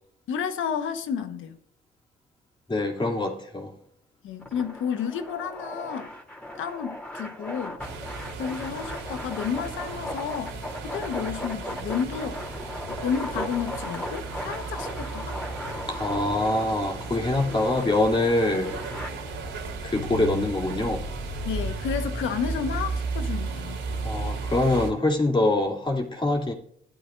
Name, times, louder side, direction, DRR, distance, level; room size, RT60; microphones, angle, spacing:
voice 1, 0.3-1.6 4.2-6.1 6.6-7.8 8.4-10.5 10.8-15.4 21.4-23.8, left 7 dB, 85° left, 1.3 m, -31 dB
voice 2, 2.7-3.7 15.9-18.8 19.8-21.1 24.0-26.5, left 2 dB, 25° left, 2.8 m, -24 dB
sound 1, 4.4-19.1, left 1 dB, 5° left, 3.2 m, -37 dB
sound 2, 7.8-24.9, right 3 dB, 85° right, 3.6 m, -34 dB
16.0 x 11.5 x 2.6 m
cardioid pair, 90°, 20 cm